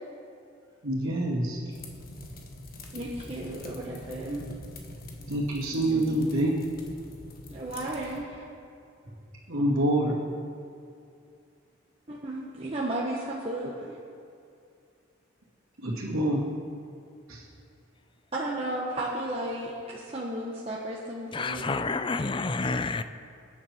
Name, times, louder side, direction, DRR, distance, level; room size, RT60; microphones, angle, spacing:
voice 1, 0.8-1.6 5.3-6.6 9.5-10.2 15.8-16.4 17.3-17.4, right 1 dB, 85° right, -9 dB, 2.4 m, -26 dB
sound 1, 1.7-8.2, left 1 dB, 45° left, 1.5 m, -44 dB
voice 2, 2.9-4.4 7.5-8.4 12.1-13.9 18.3-22.0, right 1 dB, 30° right, -5 dB, 1.3 m, -34 dB
voice 3, 21.3-23.0, left 3 dB, 25° left, 11 dB, 0.4 m, -29 dB
22.5 x 9.8 x 4.5 m, 2.5 s
head